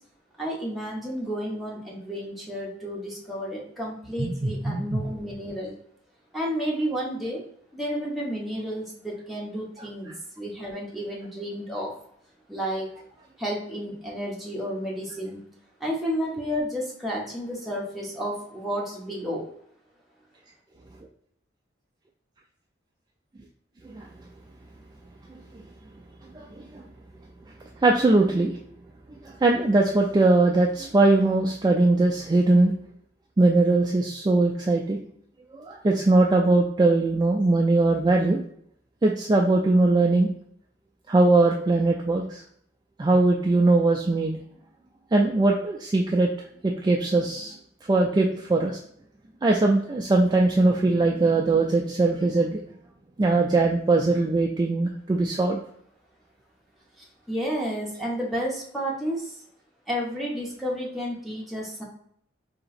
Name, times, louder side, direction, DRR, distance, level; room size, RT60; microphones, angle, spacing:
voice 1, 0.4-5.7 6.3-7.4 7.7-11.9 12.5-12.9 13.4-15.4 15.8-19.5 57.3-59.3 59.9-61.8, equal, ahead, -4 dB, 1.0 m, -31 dB
voice 2, 4.2-5.0 23.8-24.1 26.3-26.8 27.8-28.6 29.2-32.7 33.4-35.0 35.5-38.4 39.0-40.3 41.1-42.4 43.0-44.4 45.1-46.3 46.6-47.5 47.9-48.8 49.4-52.6 53.2-55.6, right 2 dB, 20° right, 0 dB, 0.4 m, -21 dB
3.8 x 2.9 x 4.2 m, 0.66 s
head